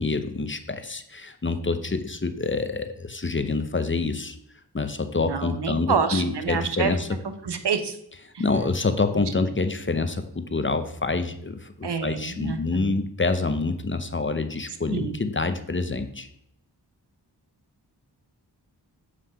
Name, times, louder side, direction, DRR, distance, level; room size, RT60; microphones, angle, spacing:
voice 1, 0.0-4.4 4.7-7.1 8.4-16.3, left 3 dB, 30° left, 9 dB, 0.7 m, -27 dB
voice 2, 5.3-6.9 7.2-7.9 8.3-8.4 11.8-12.9 14.9-15.2, right 6 dB, 70° right, 8 dB, 0.8 m, -28 dB
7.5 x 3.2 x 5.6 m, 0.71 s
cardioid pair, 40°, 42 cm